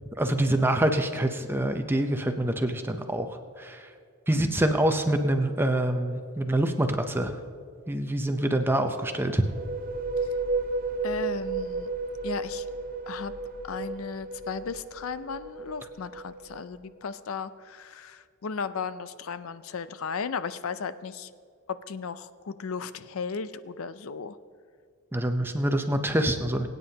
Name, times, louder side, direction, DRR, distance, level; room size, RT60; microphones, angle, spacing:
voice 1, 0.2-3.9 4.3-7.3 7.9-9.4 25.1-26.7, right 1 dB, 10° right, 6 dB, 0.7 m, -26 dB
voice 2, 4.3-4.7 11.0-11.9 12.2-12.7 13.1-13.3 13.6-21.3 21.7-24.4, left 5 dB, 65° left, 14 dB, 0.5 m, -35 dB
sound 1, 9.3-16.9, right 3 dB, 40° right, 0.8 m, -33 dB
22.5 x 9.4 x 2.9 m, 2.2 s
head